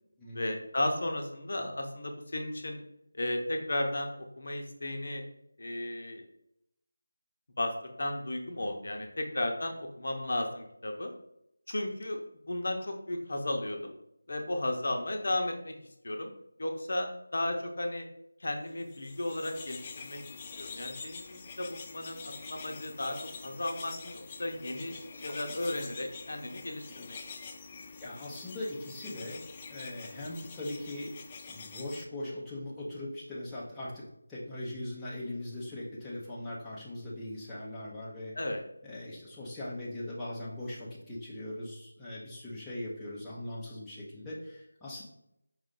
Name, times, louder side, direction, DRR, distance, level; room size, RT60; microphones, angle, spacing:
voice 1, 0.3-2.8 3.1-5.2 5.6-6.2 7.6-7.7 8.0-11.1 11.7-12.2 12.5-13.9 14.3-15.7 16.0-16.3 16.6-18.0 18.4-20.2 20.6-23.2 23.4-27.2 38.3-38.6, left 1 dB, 60° left, 3 dB, 0.8 m, -34 dB
sound 1, 18.8-32.0, left 5 dB, 20° left, 0.3 m, -46 dB
voice 2, 28.0-29.4 29.7-31.1 31.5-38.4 38.8-45.0, left 1 dB, 5° left, -9 dB, 0.7 m, -40 dB
5.2 x 2.5 x 3.7 m, 0.78 s
figure-of-eight pair, 165°, 0 cm